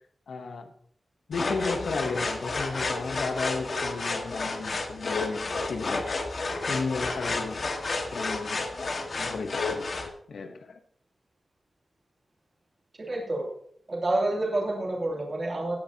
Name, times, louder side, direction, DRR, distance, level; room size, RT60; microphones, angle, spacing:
voice 1, 0.3-0.7 1.3-6.2 6.7-7.6 8.1-9.9 10.3-10.8, left 4 dB, 85° left, 0.9 m, -34 dB
sound 1, 1.3-10.1, left 3 dB, 50° left, 1.6 m, -31 dB
voice 2, 13.0-13.5 13.9-15.8, right 2 dB, 35° right, 2.8 m, -28 dB
17.5 x 10.0 x 2.8 m
wide cardioid pair, 165°, 0 cm